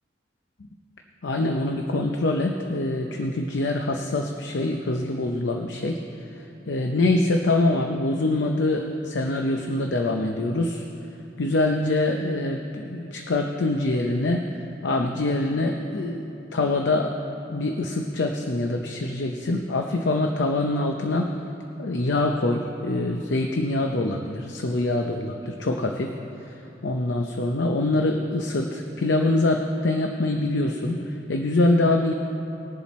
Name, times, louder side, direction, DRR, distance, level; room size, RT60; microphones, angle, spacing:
voice 1, 1.2-6.0 6.7-10.8 11.4-16.2 16.5-17.1 17.5-21.3 21.8-26.1 26.5-26.6 26.8-32.1, left 2 dB, 75° left, 3 dB, 0.7 m, -24 dB
20.5 x 7.3 x 4.2 m, 2.8 s
head